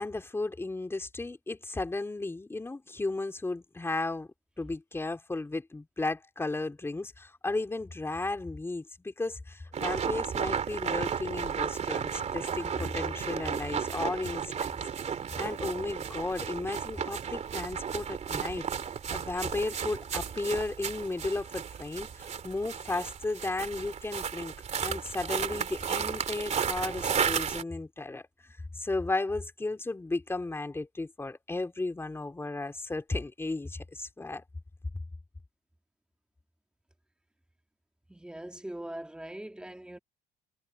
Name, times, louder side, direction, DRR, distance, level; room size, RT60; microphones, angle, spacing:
voice 1, 0.0-4.3 4.6-14.8 15.4-18.6 19.1-24.5 24.8-28.2 28.7-34.4, left 2 dB, 15° left, 3.5 m, -34 dB
sound 1, 9.7-27.6, right 7 dB, 40° right, 2.8 m, -33 dB
voice 2, 38.1-40.0, right 1 dB, 5° right, 2.4 m, -42 dB
cardioid pair, 110°, 17 cm